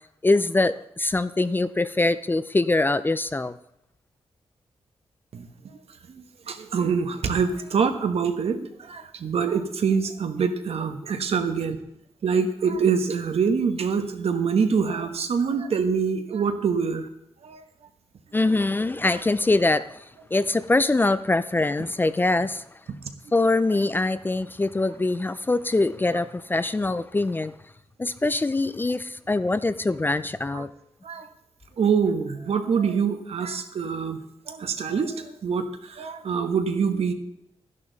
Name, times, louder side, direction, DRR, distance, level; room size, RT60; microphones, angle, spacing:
voice 1, 0.2-3.6 18.3-22.6 23.3-27.5 28.0-30.7, left 2 dB, 20° left, 14 dB, 0.4 m, -23 dB
voice 2, 5.3-5.8 6.1-11.8 12.2-17.1 17.4-17.6 30.5-30.6 31.0-31.3 31.8-37.1, right 6 dB, 70° right, 7 dB, 1.3 m, -25 dB
13.0 x 10.5 x 4.0 m, 0.80 s
wide cardioid pair, 145°, 11 cm